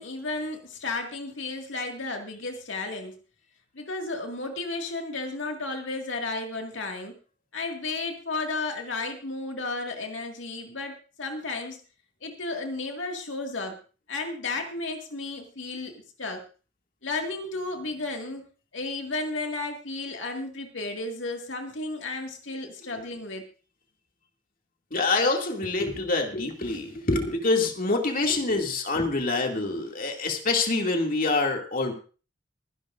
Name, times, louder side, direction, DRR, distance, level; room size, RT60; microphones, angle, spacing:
voice 1, 0.0-3.2 3.7-7.2 7.5-11.8 12.2-13.8 14.1-16.4 17.0-18.5 18.7-23.4, left 3 dB, 90° left, 3 dB, 2.1 m, -33 dB
voice 2, 24.9-31.9, left 3 dB, 50° left, 2 dB, 2.5 m, -26 dB
24.0 x 11.0 x 2.6 m, 0.36 s
head